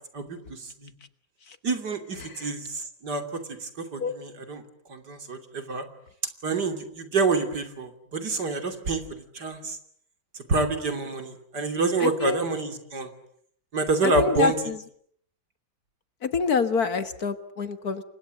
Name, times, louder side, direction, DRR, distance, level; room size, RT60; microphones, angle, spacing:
voice 1, 0.1-0.9 1.6-4.6 4.9-5.9 6.4-9.8 10.3-13.1 13.7-14.7, right 3 dB, 60° right, 6 dB, 3.4 m, -28 dB
voice 2, 12.0-12.5 14.0-14.8 16.2-18.0, left 5 dB, 55° left, 11 dB, 1.8 m, -26 dB
29.5 x 24.5 x 7.8 m, 0.66 s
omnidirectional pair, 2.1 m